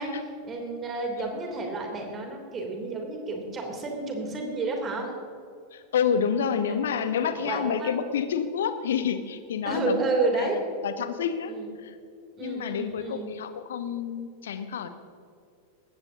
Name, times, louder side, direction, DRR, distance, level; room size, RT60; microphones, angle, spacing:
voice 1, 0.0-5.1 6.7-6.8 7.0-7.9 9.6-10.6 11.5-11.7 12.4-13.3, right 3 dB, 25° right, 1 dB, 3.3 m, -31 dB
voice 2, 5.7-11.5 11.8-12.0 12.4-14.9, left 7 dB, 60° left, 10 dB, 1.1 m, -29 dB
19.0 x 15.5 x 2.9 m, 2.5 s
figure-of-eight pair, 90°, 0 cm